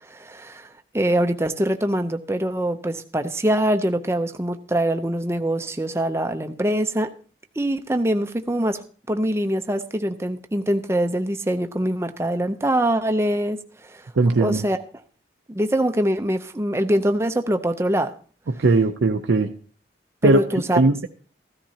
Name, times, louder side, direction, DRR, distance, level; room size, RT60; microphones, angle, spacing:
voice 1, 0.1-7.1 7.6-8.8 9.1-14.0 14.4-14.8 15.5-18.1 20.2-20.8, right 1 dB, 15° right, 7 dB, 0.6 m, -23 dB
voice 2, 14.2-14.6 18.5-19.5 20.2-20.4 20.7-21.1, right 3 dB, 90° right, 5 dB, 0.6 m, -18 dB
14.5 x 13.0 x 2.8 m, 0.42 s
head